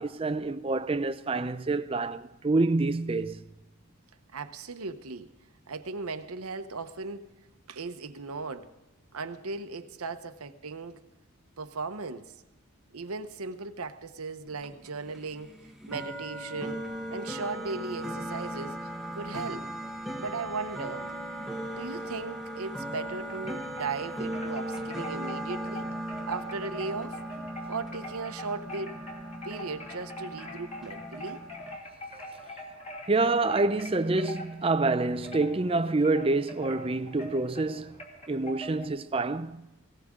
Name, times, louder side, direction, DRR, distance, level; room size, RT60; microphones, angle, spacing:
voice 1, 0.0-3.4 33.1-38.0 38.3-39.6, right 3 dB, 25° right, 0.5 m, -27 dB
voice 2, 4.3-5.3 5.7-7.3 7.7-8.7 9.1-11.0 11.6-12.3 12.9-15.5 15.9-16.8 17.1-18.8 19.1-19.7 20.2-21.1 21.7-25.9 26.2-27.2 27.7-29.0 29.4-31.4, right 4 dB, 80° right, 0.9 m, -37 dB
sound 1, 14.5-31.8, right 1 dB, ahead, 1.0 m, -38 dB
Wind chime, 23.3-24.0 24.3-38.9, equal, 30° left, 3.0 m, -43 dB
18.5 x 17.0 x 3.7 m
head